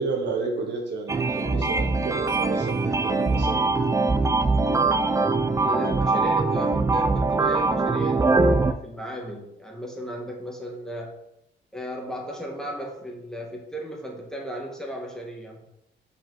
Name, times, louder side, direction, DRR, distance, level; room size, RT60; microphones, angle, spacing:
voice 1, 0.0-3.6, right 4 dB, 60° right, 2 dB, 1.3 m, -31 dB
sound 1, 1.1-8.7, right 3 dB, 15° right, 0.4 m, -22 dB
voice 2, 5.6-11.1 11.7-15.6, equal, 5° left, -1 dB, 1.5 m, -35 dB
5.1 x 5.0 x 3.9 m, 0.80 s
cardioid pair, 90°, 20 cm